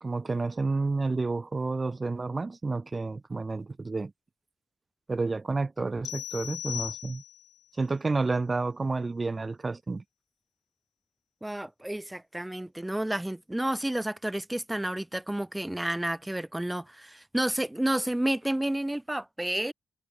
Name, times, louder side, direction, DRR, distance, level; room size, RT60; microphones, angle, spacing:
voice 1, 0.0-4.1 5.1-7.2 7.8-10.0, right 3 dB, 25° right, 1.0 m, -30 dB
sound 1, 6.0-7.6, left 12 dB, 75° left, 0.7 m, -37 dB
voice 2, 11.4-19.7, right 1 dB, 5° right, 1.2 m, -30 dB
cardioid pair, 90°, 0 cm